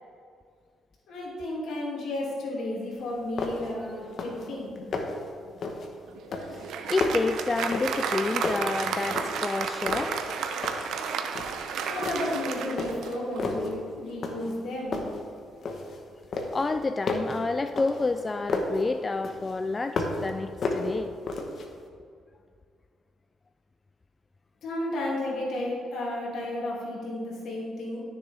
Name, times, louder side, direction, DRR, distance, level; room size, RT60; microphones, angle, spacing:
voice 1, 1.1-4.9 11.8-15.0 24.6-28.0, left 1 dB, 75° left, -4 dB, 2.6 m, -33 dB
sound 1, 2.9-3.0 3.4-3.8 4.1-4.5 4.8-5.3 5.6-5.9 6.3-8.1 8.4-9.5 9.8-10.9 11.3-11.6 12.0-12.4 12.8-13.7 14.2-14.6 14.9-16.0 16.3-18.8 19.2-20.3 20.6-21.7, left 3 dB, 55° left, 1.2 m, -32 dB
Applause, 6.1-13.6, right 6 dB, 80° right, 0.7 m, -32 dB
voice 2, 6.5-10.2 16.5-21.1 26.6-26.7, left 3 dB, 25° left, 9 dB, 0.3 m, -29 dB
12.5 x 6.8 x 3.5 m, 2.2 s
cardioid pair, 90°, 0 cm